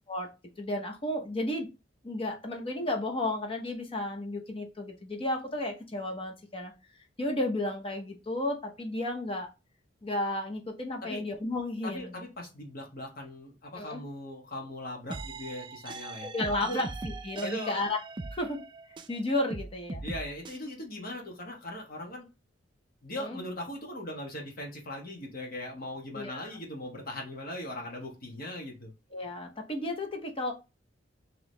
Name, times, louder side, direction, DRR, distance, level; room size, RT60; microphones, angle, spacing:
voice 1, 0.6-1.7 2.0-6.7 7.2-9.5 10.0-12.2 13.7-14.0 16.2-18.0 18.3-18.6 19.1-20.0 23.1-23.4 26.1-26.6 29.1-30.5, left 1 dB, 30° left, 3 dB, 0.8 m, -33 dB
voice 2, 11.8-16.3 16.6-16.8 17.4-17.8 20.0-22.3 23.0-28.9, left 1 dB, 50° left, 0 dB, 1.2 m, -39 dB
sound 1, 15.1-19.2 19.5-20.6, right 3 dB, 25° right, 0.3 m, -40 dB
4.6 x 3.0 x 3.2 m, 0.27 s
head